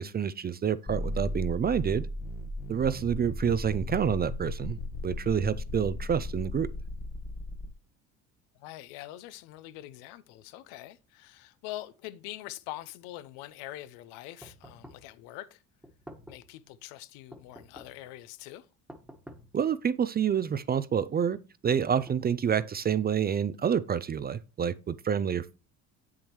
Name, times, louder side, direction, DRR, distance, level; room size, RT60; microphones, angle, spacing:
voice 1, 0.0-2.0 2.7-4.8 5.0-6.7 19.5-21.4 21.6-25.6, right 8 dB, 25° right, 0.4 m, -28 dB
sound 1, 0.9-7.7, left 1 dB, 20° left, 1.0 m, -36 dB
voice 2, 8.6-15.6 16.3-18.7, left 15 dB, 75° left, 0.8 m, -44 dB
sound 2, 14.4-15.1 15.8-16.6 17.3-18.1 18.9-19.6 20.3-20.9 21.7-22.6, equal, 5° right, 1.4 m, -51 dB
7.9 x 7.4 x 3.0 m
supercardioid pair, 80°, 41 cm